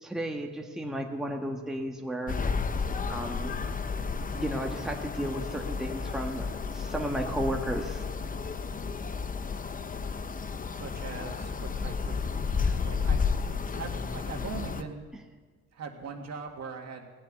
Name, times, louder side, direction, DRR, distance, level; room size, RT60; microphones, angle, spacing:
voice 1, 0.0-2.4 3.1-3.6 4.3-8.0 12.6-12.9, right 1 dB, ahead, 1 dB, 1.5 m, -34 dB
sound 1, 2.3-14.8, left 5 dB, 25° left, 0.7 m, -32 dB
voice 2, 10.7-12.4 12.8-13.2 13.7-15.0 15.7-17.1, right 5 dB, 60° right, 3 dB, 2.1 m, -40 dB
16.5 x 7.4 x 9.0 m, 1.5 s
cardioid pair, 90°, 30 cm